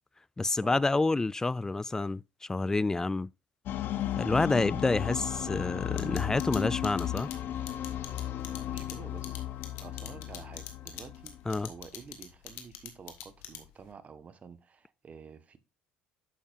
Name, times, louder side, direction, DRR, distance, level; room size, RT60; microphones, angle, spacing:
voice 1, 0.4-3.3 4.2-7.3 11.5-11.7, left 3 dB, 15° left, 0.3 m, -28 dB
sound 1, 3.7-11.8, left 12 dB, 60° left, 0.8 m, -35 dB
sound 2, 6.0-13.9, left 13 dB, 75° left, 1.9 m, -43 dB
voice 2, 8.7-11.4 11.6-15.6, right 6 dB, 35° right, 1.4 m, -49 dB
10.0 x 7.2 x 2.5 m
supercardioid pair, 80°, 4 cm